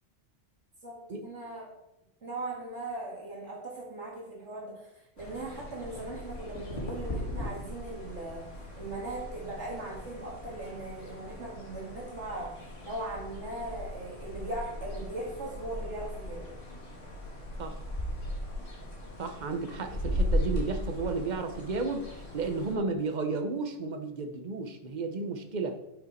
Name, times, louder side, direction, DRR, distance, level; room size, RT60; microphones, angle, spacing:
voice 1, 0.8-1.7 2.2-4.9 5.2-8.5 8.8-12.6 12.8-16.5, right 2 dB, 70° right, -4 dB, 2.6 m, -39 dB
sound 1, 5.2-22.7, left 1 dB, 80° left, 2.5 m, -37 dB
voice 2, 19.2-25.8, right 4 dB, 40° right, 6 dB, 1.1 m, -33 dB
11.0 x 6.7 x 4.3 m, 0.90 s
omnidirectional pair, 1.3 m